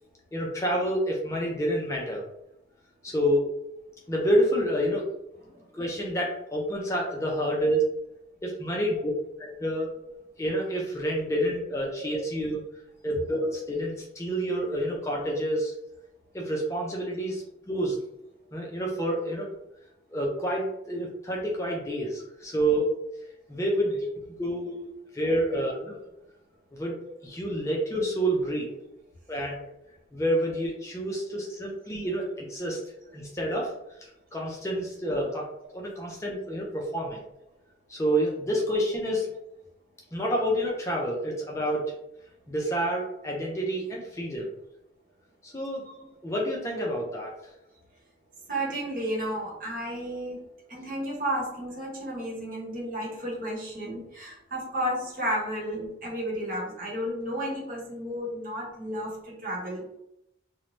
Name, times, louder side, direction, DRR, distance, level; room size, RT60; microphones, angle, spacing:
voice 1, 0.3-2.2 3.0-3.5 4.1-5.1 5.7-7.8 8.4-9.1 9.4-9.9 10.4-12.6 13.0-15.7 16.3-18.0 18.5-19.4 20.1-23.0 23.5-24.0 24.4-24.7 25.1-25.7 26.7-27.0 27.2-28.7 29.3-29.6 30.1-32.8 33.1-33.7 34.3-35.5 35.7-37.2 37.9-39.2 40.1-41.8 42.5-44.5 45.4-45.8 46.2-47.3, equal, 15° left, -2 dB, 0.4 m, -28 dB
voice 2, 48.5-50.4 50.7-60.0, equal, 50° right, -4 dB, 1.0 m, -33 dB
2.6 x 2.1 x 3.0 m, 0.82 s
head